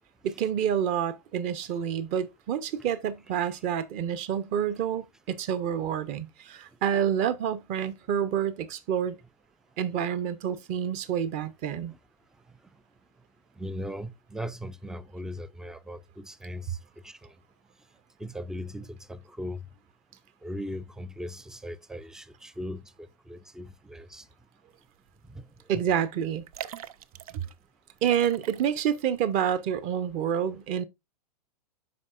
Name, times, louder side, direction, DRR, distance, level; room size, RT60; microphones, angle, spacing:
voice 1, 0.2-9.2 9.8-11.9 25.7-26.4 28.0-30.8, right 9 dB, 35° right, 0.9 m, -28 dB
voice 2, 13.6-16.8 17.0-17.2 18.2-19.6 20.4-22.9 23.3-24.2 25.3-25.5, equal, 5° right, 0.4 m, -38 dB
sound 1, 25.1-25.3 25.6-25.7 26.4-27.6 28.0-29.0 29.4-29.5, right 11 dB, 60° right, 0.6 m, -42 dB
12.5 x 4.7 x 2.5 m
hypercardioid pair, 110°, 21 cm